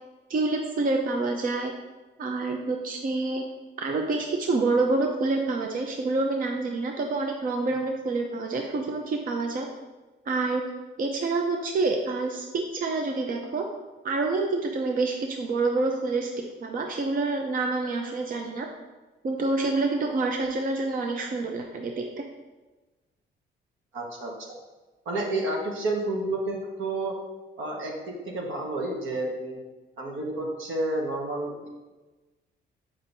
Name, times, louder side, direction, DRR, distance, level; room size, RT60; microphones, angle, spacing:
voice 1, 0.3-1.7 2.2-3.4 3.8-9.7 10.3-10.6 11.0-13.6 14.0-16.3 16.6-18.7 19.2-22.2, right 3 dB, 45° right, 2 dB, 0.6 m, -27 dB
voice 2, 23.9-24.5 25.0-27.2 27.6-27.9 28.3-29.6 30.0-31.7, right 2 dB, 75° right, -1 dB, 1.4 m, -30 dB
7.0 x 5.3 x 2.7 m, 1.2 s
cardioid pair, 90°, 20 cm